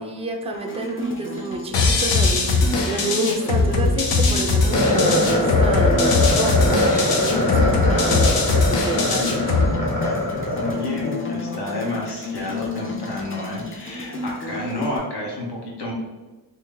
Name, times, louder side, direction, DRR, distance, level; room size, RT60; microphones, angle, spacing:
voice 1, 0.0-9.5, right 2 dB, 15° right, 3 dB, 0.4 m, -29 dB
sound 1, 0.5-15.0, left 2 dB, 30° left, 0.6 m, -32 dB
sound 2, 1.7-9.7, left 3 dB, 90° left, 0.6 m, -20 dB
sound 3, 4.7-11.1, left 1 dB, 50° left, 1.2 m, -22 dB
voice 2, 10.5-15.9, left 1 dB, 70° left, -2 dB, 1.0 m, -30 dB
2.8 x 2.7 x 3.8 m, 1.2 s
wide cardioid pair, 130°, 41 cm